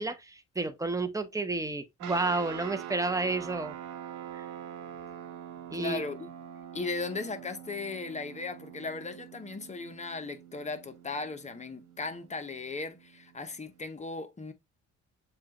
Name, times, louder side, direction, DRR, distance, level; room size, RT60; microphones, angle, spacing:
voice 1, 0.0-3.8 4.3-4.4 5.7-6.0, right 3 dB, 10° right, 0.8 m, -31 dB
sound 1, 2.0-13.8, right 10 dB, 85° right, 1.4 m, -44 dB
voice 2, 5.7-6.3 6.7-14.5, left 3 dB, 25° left, 0.9 m, -37 dB
7.2 x 2.4 x 2.9 m
cardioid pair, 90°, 30 cm